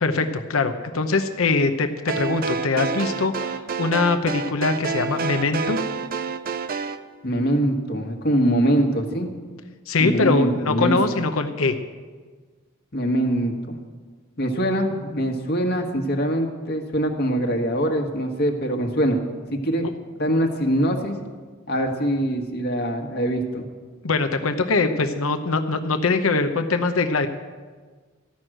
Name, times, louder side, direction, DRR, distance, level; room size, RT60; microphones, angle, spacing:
voice 1, 0.0-5.8 9.9-11.8 24.0-27.3, left 3 dB, 80° left, 8 dB, 0.8 m, -22 dB
sound 1, 2.1-7.0, right 4 dB, 45° right, 0.5 m, -28 dB
voice 2, 7.2-9.3 10.0-11.0 12.9-13.8 14.4-19.2 19.5-19.9 20.2-21.1 21.7-23.7, equal, 50° left, 3 dB, 1.5 m, -23 dB
14.0 x 6.3 x 9.0 m, 1.4 s
head